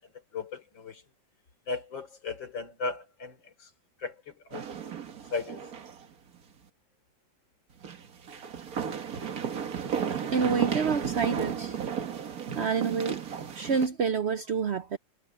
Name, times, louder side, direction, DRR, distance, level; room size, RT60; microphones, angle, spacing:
voice 1, 0.3-1.0 1.7-3.7 4.0-4.7 5.3-5.6, left 4 dB, 80° left, 4.3 m, -36 dB
sound 1, 4.5-6.1 6.3-6.4 7.8-13.9, right 7 dB, 55° right, 1.7 m, -34 dB
voice 2, 10.3-11.8 12.0-12.1 12.6-13.3 13.5-15.0, right 5 dB, 75° right, 0.6 m, -28 dB
omnidirectional pair, 2.0 m